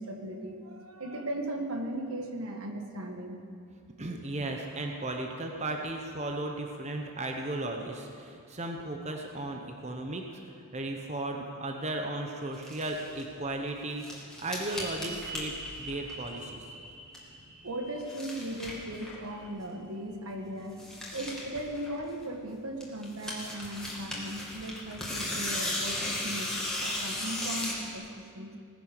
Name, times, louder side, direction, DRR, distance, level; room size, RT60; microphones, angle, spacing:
voice 1, 0.0-3.4 17.6-20.8 21.1-28.5, right 1 dB, 75° right, 4 dB, 1.6 m, -37 dB
voice 2, 4.0-16.7, right 2 dB, 30° right, 3 dB, 1.0 m, -36 dB
sound 1, 12.5-13.2 13.7-16.5 16.7-17.4 17.8-19.3 19.6-19.7 20.0-20.1 20.3-20.4 20.6-22.4 22.8-27.9, left 1 dB, 5° left, 2.4 m, -36 dB
sound 2, 14.7-20.0 20.3-20.4, right 2 dB, 60° right, 4.6 m, -46 dB
18.0 x 10.0 x 6.7 m, 2.4 s
head